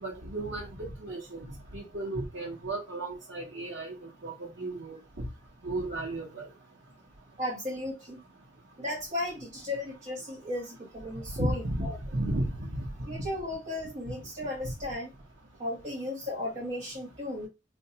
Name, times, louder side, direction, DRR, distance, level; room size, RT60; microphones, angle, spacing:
voice 1, 0.0-3.9 4.2-5.2 5.6-6.5 11.3-12.5, right 1 dB, 85° right, 0.9 m, -34 dB
voice 2, 7.4-8.2 8.8-12.0 13.1-15.1 15.6-17.5, left 1 dB, 40° right, 1.0 m, -35 dB
4.4 x 2.3 x 2.8 m
head